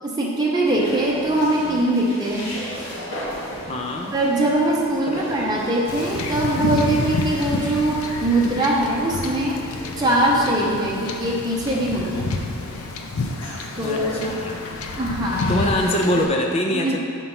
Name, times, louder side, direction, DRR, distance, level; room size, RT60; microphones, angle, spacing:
voice 1, 0.0-2.5 4.1-9.6 10.0-12.4 13.7-14.3 15.0-15.7 16.7-17.0, right 1 dB, 20° right, -4 dB, 0.9 m, -22 dB
sound 1, 0.6-16.3, equal, 55° left, 1.5 m, -37 dB
voice 2, 3.6-4.2 5.1-5.3 13.8-14.8 15.5-17.0, left 1 dB, 30° left, 1 dB, 0.5 m, -24 dB
Wind / Ocean / Boat Water vehicle, 5.9-16.2, left 3 dB, 75° left, 0.5 m, -29 dB
5.5 x 4.5 x 5.6 m, 2.5 s
head